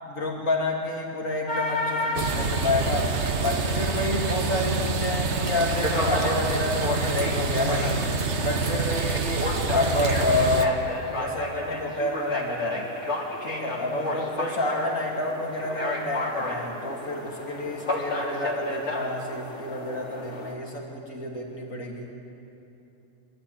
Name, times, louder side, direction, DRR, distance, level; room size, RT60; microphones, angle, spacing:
voice 1, 0.1-3.1 3.4-8.0 8.4-10.9 11.2-12.9 13.4-22.1, left 2 dB, 85° left, -1 dB, 3.2 m, -29 dB
sound 1, 1.5-20.5, left 2 dB, 60° left, 3.3 m, -32 dB
sound 2, 2.2-10.7, right 4 dB, 60° right, 1.4 m, -27 dB
23.5 x 13.5 x 8.9 m, 2.9 s
omnidirectional pair, 1.4 m